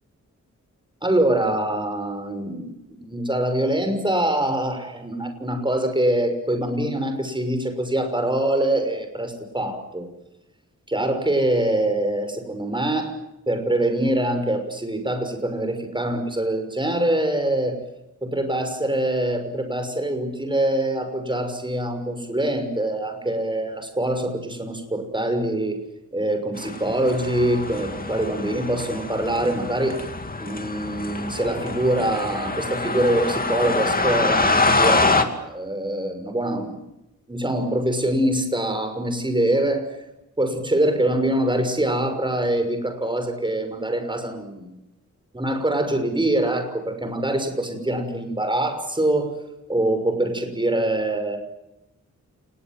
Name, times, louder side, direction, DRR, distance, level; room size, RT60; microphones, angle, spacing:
voice 1, 1.0-10.1 10.9-13.1 13.5-17.8 18.2-25.8 26.1-30.0 30.4-36.8 37.3-39.9 40.4-44.8 45.3-49.3 49.7-51.4, right 1 dB, 15° right, 7 dB, 6.2 m, -24 dB
sound 1, 26.6-35.2, left 3 dB, 30° left, 2.6 m, -25 dB
29.5 x 20.0 x 7.7 m, 0.88 s
wide cardioid pair, 120°, 30 cm